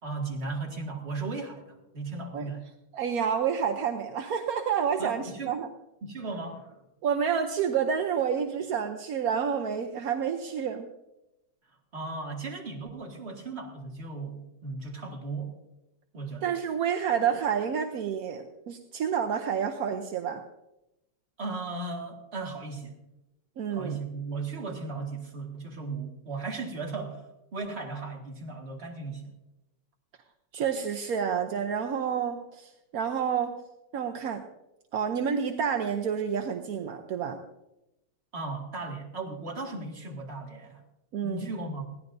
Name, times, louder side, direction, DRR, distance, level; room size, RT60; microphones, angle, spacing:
voice 1, 0.0-2.6 5.0-5.6 6.0-6.8 11.9-15.6 16.1-16.5 21.4-23.0 23.7-27.3 27.5-29.3 38.3-40.8 41.2-41.9, right 3 dB, 30° right, 0 dB, 2.1 m, -36 dB
voice 2, 2.9-5.7 7.0-10.9 16.4-20.4 23.6-24.0 30.5-33.6 33.9-34.4 34.9-37.4 41.1-41.5, right 7 dB, 60° right, 5 dB, 1.0 m, -29 dB
21.5 x 15.5 x 2.6 m, 0.92 s
omnidirectional pair, 2.2 m